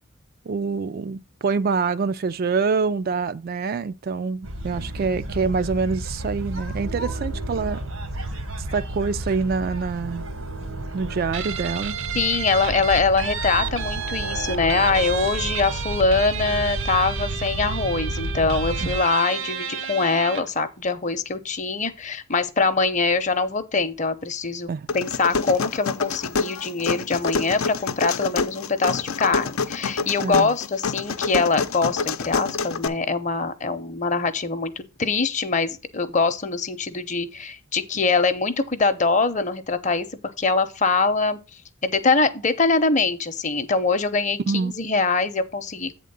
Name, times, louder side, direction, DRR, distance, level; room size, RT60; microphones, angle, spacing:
voice 1, 0.5-7.8 8.6-10.3 10.9-12.0 18.8-18.9 24.7-24.9 30.2-30.5 44.5-44.7, right 4 dB, 45° right, 0.3 m, -25 dB
sound 1, 4.4-19.0, right 1 dB, 85° right, 1.4 m, -31 dB
Guitar, 11.3-20.6, right 8 dB, 60° right, 0.7 m, -32 dB
voice 2, 12.1-40.1 40.4-41.4 41.8-45.9, left 4 dB, 35° left, 0.7 m, -23 dB
sound 2, 24.9-32.9, left 4 dB, 85° left, 0.7 m, -27 dB
8.3 x 3.7 x 6.7 m
head